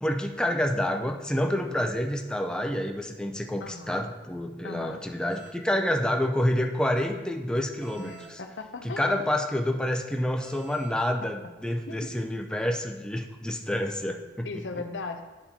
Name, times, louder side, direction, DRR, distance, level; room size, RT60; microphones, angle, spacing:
voice 1, 0.0-8.4 8.8-14.5, left 1 dB, 5° left, 3 dB, 0.4 m, -28 dB
voice 2, 3.6-4.0 4.6-5.0 8.0-9.2 11.9-12.1 14.4-15.2, left 4 dB, 75° left, 7 dB, 0.6 m, -38 dB
sound 1, 5.3-5.6 7.8-8.4 10.4-11.0, right 6 dB, 65° right, 0.9 m, -49 dB
10.5 x 4.1 x 2.9 m, 1.1 s
head